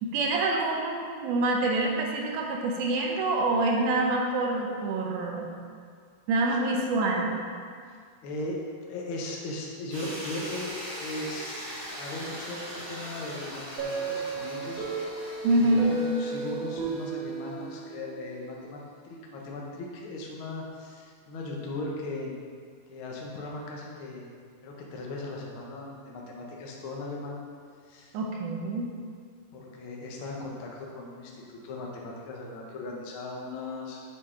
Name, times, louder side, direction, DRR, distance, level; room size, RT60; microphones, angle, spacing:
voice 1, 0.0-5.5 6.3-7.4 15.4-16.1 28.1-28.9, right 2 dB, 75° right, 0 dB, 2.1 m, -26 dB
voice 2, 8.2-10.7 11.0-14.9 15.6-22.3 22.9-24.3 24.6-27.4 27.9-28.1 29.5-34.0, left 2 dB, 85° left, -2 dB, 1.1 m, -38 dB
sound 1, 9.9-17.9, equal, 35° right, 1.9 m, -41 dB
sound 2, 13.8-18.5, right 4 dB, 55° right, 2.4 m, -35 dB
6.5 x 6.4 x 3.8 m, 2.1 s
omnidirectional pair, 3.9 m